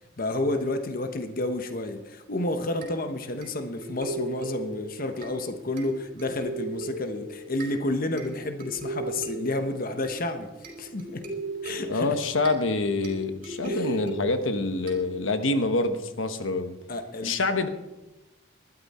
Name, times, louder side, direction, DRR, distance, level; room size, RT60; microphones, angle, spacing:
voice 1, 0.2-11.2 11.6-12.1 13.6-14.0 16.9-17.4, left 2 dB, 45° left, 7 dB, 1.1 m, -30 dB
sound 1, 2.8-15.6, right 2 dB, 45° right, 4.2 m, -38 dB
voice 2, 11.9-16.8 17.2-17.7, left 3 dB, 85° left, 8 dB, 1.2 m, -26 dB
19.5 x 12.5 x 4.3 m, 1.0 s
head